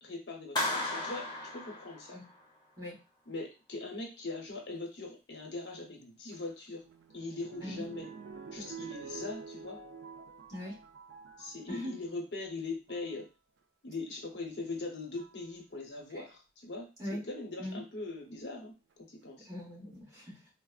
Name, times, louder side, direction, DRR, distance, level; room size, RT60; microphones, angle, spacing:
voice 1, 0.0-2.2 3.3-6.8 7.1-8.1 8.5-9.8 11.4-13.3 13.8-18.7 19.1-19.5, left 3 dB, 75° left, 1 dB, 0.9 m, -41 dB
Clapping, 0.6-2.4, left 2 dB, 25° left, 0.6 m, -35 dB
sound 1, 6.3-12.0 12.7-13.1 14.4-14.5 15.2-15.5 17.6-18.2 18.9-19.0 19.2-19.3, right 5 dB, 85° right, 0.4 m, -48 dB
voice 2, 19.4-20.5, left 1 dB, 20° right, -5 dB, 1.1 m, -40 dB
3.6 x 2.0 x 2.4 m, 0.29 s
head